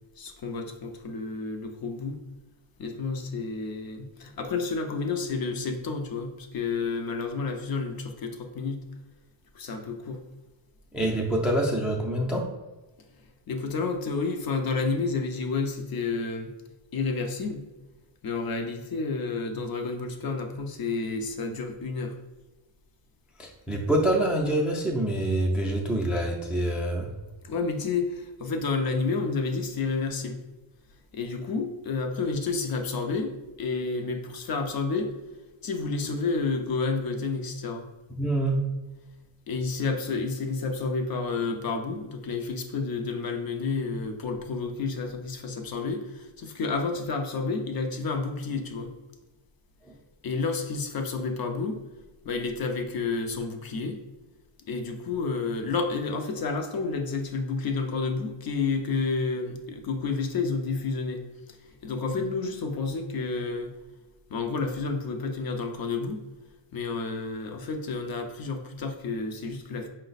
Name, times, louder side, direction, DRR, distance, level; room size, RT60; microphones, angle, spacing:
voice 1, 0.2-2.2 2.8-8.9 9.5-10.2 13.5-16.5 16.9-17.6 18.2-22.2 27.4-30.4 31.1-35.1 35.6-37.9 39.5-48.9 50.2-51.8 52.2-54.0 54.7-63.7 64.3-66.2 66.7-69.9, left 4 dB, 45° left, 4 dB, 0.6 m, -30 dB
voice 2, 10.9-12.5 23.4-27.1 38.2-38.7, right 1 dB, ahead, 0 dB, 0.3 m, -26 dB
4.8 x 2.2 x 3.9 m, 1.1 s
cardioid pair, 120°, 50 cm